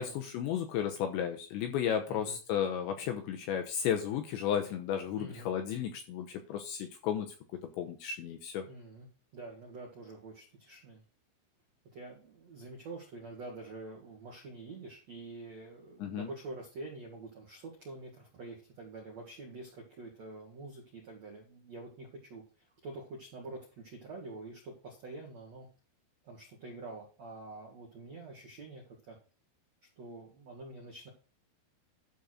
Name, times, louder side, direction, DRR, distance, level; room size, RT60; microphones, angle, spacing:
voice 1, 0.0-7.3 7.8-8.6 16.0-16.3, left 9 dB, 75° left, 5 dB, 2.8 m, -33 dB
voice 2, 5.2-5.5 8.7-9.1 9.3-11.0 11.9-22.4 22.8-25.7 26.2-29.2 30.0-31.1, right 2 dB, 65° right, -1 dB, 1.6 m, -46 dB
11.5 x 4.3 x 6.3 m, 0.36 s
omnidirectional pair, 6.0 m